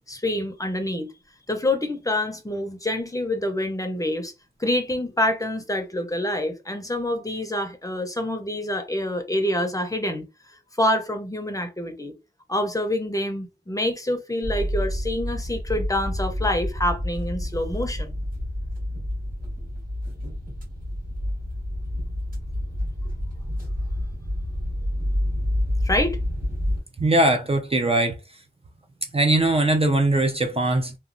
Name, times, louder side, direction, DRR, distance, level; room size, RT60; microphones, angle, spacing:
voice 1, 0.1-1.1 1.5-4.3 4.6-10.2 10.8-12.1 12.5-18.1 25.8-26.2, left 1 dB, 20° left, 0.6 m, -26 dB
sound 1, 14.4-26.8, left 1 dB, 50° right, 1.6 m, -28 dB
voice 2, 27.0-28.2 29.1-31.0, right 2 dB, 30° right, 0.5 m, -20 dB
3.0 x 2.2 x 2.5 m
wide cardioid pair, 85°, 18 cm